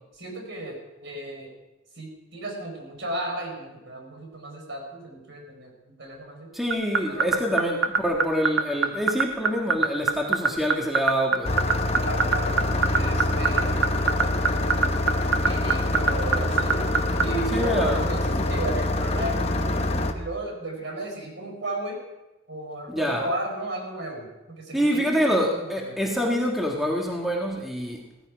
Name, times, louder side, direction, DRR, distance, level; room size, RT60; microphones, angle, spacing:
voice 1, 0.1-1.5 1.9-5.7 6.0-6.5 7.1-7.6 12.0-13.9 15.4-16.9 17.2-19.8 20.1-22.0 22.5-26.0, right 1 dB, 60° right, 2 dB, 5.0 m, -34 dB
voice 2, 6.5-11.5 17.5-18.0 22.9-23.2 24.7-28.0, equal, ahead, -1 dB, 1.5 m, -26 dB
sound 1, 6.7-17.2, right 5 dB, 80° right, 1.2 m, -20 dB
Engine starting, 11.4-20.1, left 1 dB, 30° left, 1.1 m, -25 dB
16.5 x 14.5 x 5.1 m, 1.0 s
head